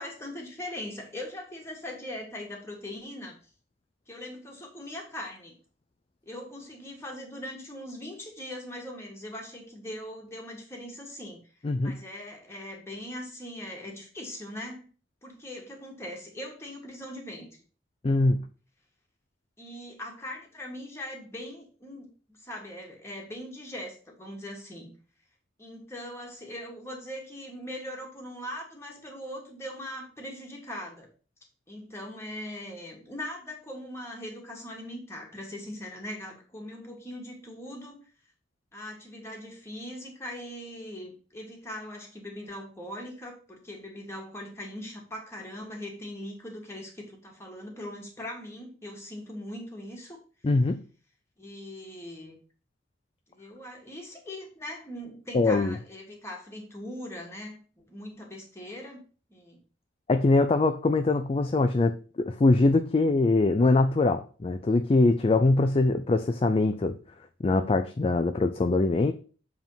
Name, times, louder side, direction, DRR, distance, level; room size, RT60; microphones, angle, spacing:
voice 1, 0.0-3.4 4.1-5.5 6.3-11.5 11.8-14.9 15.2-17.5 19.6-24.9 25.6-31.1 31.7-38.0 38.7-50.2 51.4-52.4 53.3-59.0 59.3-59.6, left 1 dB, 15° left, 0 dB, 1.9 m, -40 dB
voice 2, 11.6-12.0 18.0-18.4 50.4-50.8 55.3-55.7 60.1-67.0 67.4-69.1, left 2 dB, 30° left, 8 dB, 0.4 m, -23 dB
7.2 x 3.6 x 5.6 m, 0.38 s
head